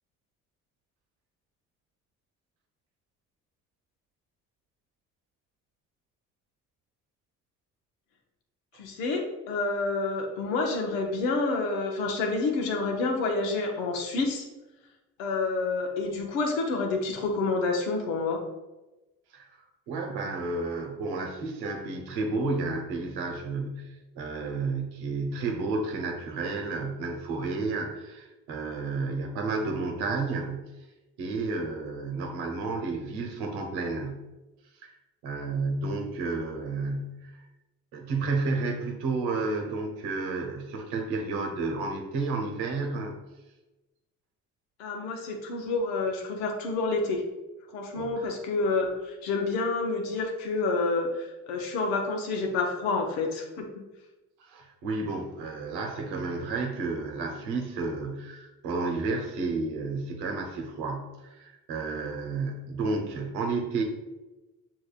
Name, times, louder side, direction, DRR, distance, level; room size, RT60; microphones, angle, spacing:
voice 1, 8.7-14.5 15.2-18.4 44.8-47.2 47.7-53.8, left 3 dB, 90° left, 2 dB, 0.8 m, -28 dB
voice 2, 19.9-30.7 31.2-34.3 34.8-34.9 35.2-37.3 37.9-43.2 47.9-48.1 54.4-63.8, right 3 dB, 80° right, 2 dB, 1.0 m, -31 dB
6.8 x 3.0 x 2.4 m, 1.1 s
hypercardioid pair, 55°, 39 cm